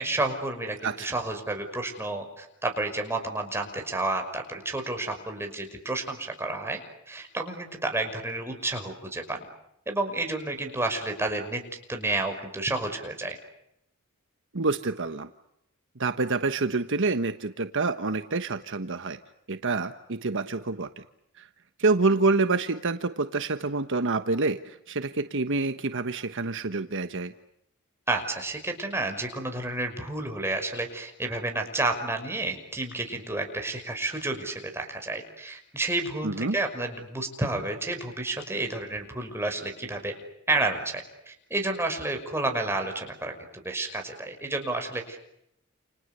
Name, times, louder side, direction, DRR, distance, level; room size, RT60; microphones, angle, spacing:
voice 1, 0.0-6.8 7.1-9.5 9.9-11.6 11.9-13.4 28.1-40.1 40.5-43.3 43.6-45.2, right 2 dB, 10° right, 3 dB, 5.8 m, -30 dB
voice 2, 0.8-1.1 14.5-15.3 16.0-19.2 19.5-21.0 21.4-21.5 21.8-27.3 36.2-36.6, right 3 dB, 60° right, 9 dB, 1.3 m, -27 dB
29.5 x 29.5 x 6.9 m, 0.80 s
head